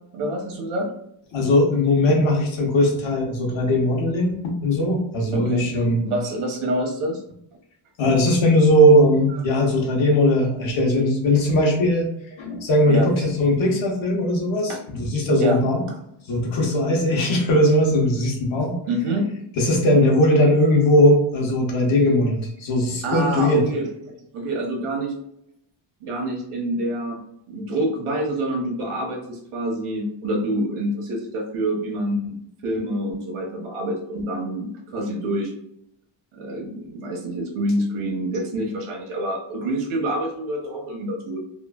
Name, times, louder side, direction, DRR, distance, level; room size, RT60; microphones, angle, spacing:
voice 1, 0.1-0.9 5.3-5.7 6.0-7.2 12.9-13.1 14.7-14.8 15.4-15.6 18.9-19.3 23.0-25.1 26.0-27.2 27.5-32.4 32.6-35.5 36.3-41.4, right 1 dB, 85° right, 2 dB, 0.9 m, -27 dB
voice 2, 1.3-6.1 8.0-12.1 12.4-15.8 16.3-18.7 19.6-23.7, left 1 dB, 70° left, 1 dB, 0.9 m, -19 dB
3.0 x 2.4 x 2.3 m, 0.75 s
wide cardioid pair, 155°, 48 cm